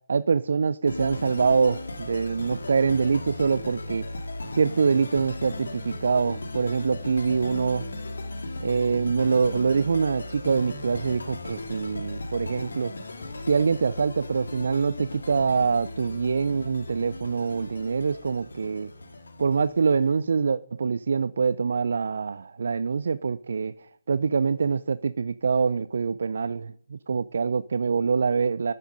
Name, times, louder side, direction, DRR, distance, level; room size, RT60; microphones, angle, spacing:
voice 1, 0.1-4.0 4.5-7.8 8.6-12.9 13.4-18.9 19.4-23.7 24.1-28.7, right 5 dB, 60° right, 0.4 m, -25 dB
sound 1, 0.9-20.2, left 2 dB, 70° left, 2.1 m, -37 dB
12.0 x 10.5 x 5.3 m
figure-of-eight pair, 145°, 0 cm